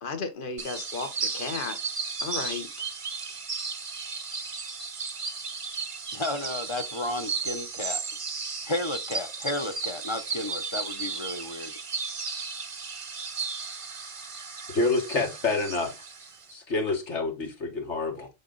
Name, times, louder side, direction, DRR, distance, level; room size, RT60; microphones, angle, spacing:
voice 1, 0.0-1.9 2.2-2.7, left 4 dB, 45° left, 1.3 m, -34 dB
sound 1, 0.6-16.5, right 4 dB, 30° right, 0.7 m, -35 dB
voice 2, 6.1-8.0 8.6-11.7, left 1 dB, 30° left, 0.6 m, -32 dB
voice 3, 14.7-16.0 16.5-18.3, left 3 dB, 70° left, 1.9 m, -27 dB
8.0 x 4.1 x 3.8 m
omnidirectional pair, 1.2 m